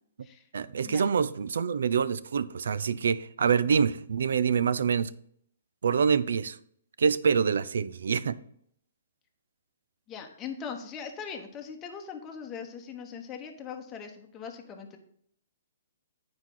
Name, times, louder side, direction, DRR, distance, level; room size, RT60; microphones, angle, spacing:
voice 1, 0.5-5.1 5.8-6.6 7.0-8.4, right 6 dB, 75° right, 0.5 m, -26 dB
voice 2, 10.1-15.0, left 6 dB, 15° left, 0.9 m, -40 dB
9.4 x 4.8 x 3.8 m
hypercardioid pair, 165°, 0 cm